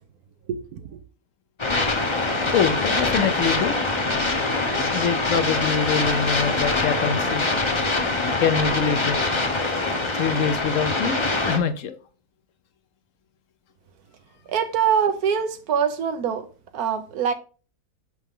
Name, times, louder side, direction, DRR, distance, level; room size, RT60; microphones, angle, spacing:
sound 1, 1.6-11.6, left 2 dB, 25° left, 0.8 m, -24 dB
voice 1, 2.5-3.8 4.9-7.6 8.4-9.2 10.1-11.2 11.5-12.0, left 6 dB, 65° left, 1.0 m, -24 dB
voice 2, 14.5-16.5 16.7-17.3, right 7 dB, 85° right, 1.3 m, -23 dB
6.1 x 5.6 x 3.7 m
omnidirectional pair, 1.6 m